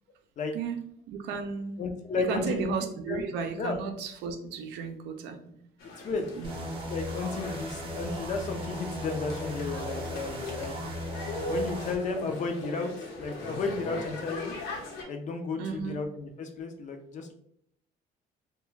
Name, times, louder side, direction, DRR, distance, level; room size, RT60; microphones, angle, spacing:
voice 1, 0.5-1.8 2.2-5.7 6.3-6.7 15.6-16.0, right 6 dB, 85° right, 5 dB, 0.5 m, -34 dB
voice 2, 1.8-2.7 3.1-3.2 3.6-3.8 6.0-6.3 6.7-10.8 11.5-14.6 15.1-17.3, left 4 dB, 45° left, 5 dB, 0.5 m, -33 dB
sound 1, 5.8-15.0, left 1 dB, 80° left, 0.9 m, -40 dB
sound 2, 6.4-12.0, equal, 30° right, 0.6 m, -37 dB
2.3 x 2.2 x 3.1 m, 0.70 s
cardioid pair, 110°, 17 cm